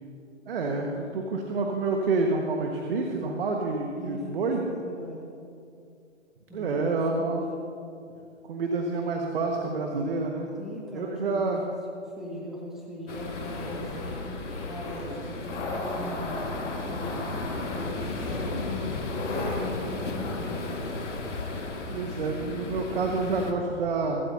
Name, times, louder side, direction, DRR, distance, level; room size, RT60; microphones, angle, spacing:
voice 1, 0.5-4.6 6.5-7.4 8.4-10.5 10.9-11.6 21.9-24.2, right 3 dB, 50° right, 1 dB, 1.6 m, -28 dB
voice 2, 4.0-5.3 6.5-7.4 10.6-11.5 11.8-14.3 14.6-17.1 17.7-20.7, left 1 dB, ahead, -5 dB, 2.0 m, -39 dB
sound 1, 13.1-23.5, left 3 dB, 80° left, 2.2 m, -35 dB
sound 2, 13.3-21.7, left 2 dB, 20° left, 3.7 m, -38 dB
24.0 x 12.5 x 2.8 m, 2.5 s
figure-of-eight pair, 135°, 37 cm